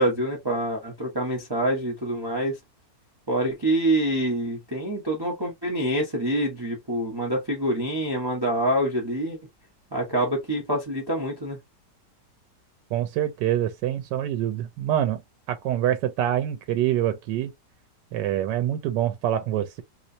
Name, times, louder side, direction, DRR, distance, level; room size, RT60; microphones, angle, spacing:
voice 1, 0.0-2.5 3.3-9.4 9.9-11.6, right 1 dB, 20° right, 0.8 m, -26 dB
voice 2, 12.9-15.2 15.5-17.5 18.1-19.8, right 11 dB, 80° right, 1.2 m, -25 dB
3.1 x 3.0 x 2.7 m
omnidirectional pair, 1.9 m